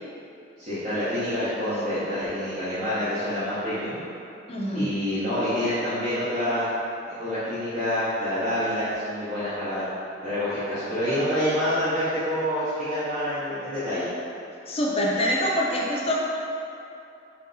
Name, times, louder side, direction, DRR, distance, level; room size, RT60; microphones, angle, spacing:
voice 1, 0.6-4.0 4.7-6.6 7.1-9.9 10.2-14.1, equal, 45° right, -15 dB, 0.9 m, -27 dB
voice 2, 4.5-4.9 14.7-16.2, equal, 30° left, -3 dB, 0.5 m, -25 dB
3.3 x 2.7 x 3.9 m, 2.7 s
head